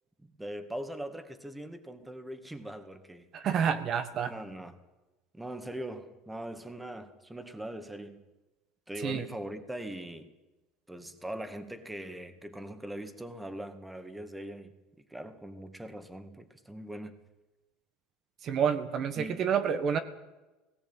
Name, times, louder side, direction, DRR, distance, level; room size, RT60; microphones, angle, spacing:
voice 1, 0.2-3.3 4.2-4.8 5.3-8.2 8.9-10.3 10.9-14.7 15.1-17.2 19.2-19.4, right 1 dB, 5° right, 2.0 m, -41 dB
voice 2, 3.3-4.3 9.0-9.2 18.4-20.0, right 7 dB, 40° right, 1.6 m, -28 dB
18.0 x 16.5 x 9.0 m
supercardioid pair, 125°, 0 cm